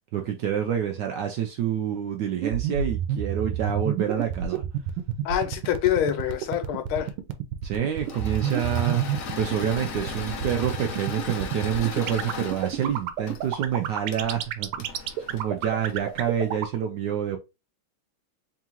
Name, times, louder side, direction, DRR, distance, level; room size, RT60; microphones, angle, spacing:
voice 1, 0.1-4.6 7.6-9.0 9.4-15.0 15.3-17.4, right 9 dB, 75° right, 1.0 m, -27 dB
sound 1, 2.4-16.8, right 10 dB, 90° right, 1.5 m, -28 dB
voice 2, 5.2-7.1, left 11 dB, 85° left, 1.5 m, -25 dB
Engine / Mechanisms, 7.9-16.3, left 5 dB, 60° left, 0.9 m, -37 dB
3.7 x 3.6 x 2.9 m
omnidirectional pair, 2.3 m